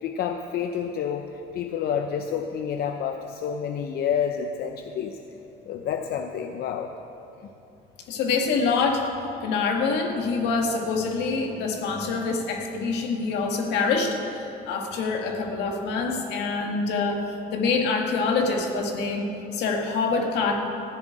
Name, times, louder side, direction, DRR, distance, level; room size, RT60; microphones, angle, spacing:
voice 1, 0.0-5.2 5.7-6.9, left 8 dB, 65° left, 5 dB, 0.7 m, -29 dB
voice 2, 8.1-9.1 9.4-20.6, left 4 dB, 85° left, 2 dB, 1.9 m, -25 dB
15.0 x 7.3 x 9.3 m, 2.9 s
cardioid pair, 110°, 17 cm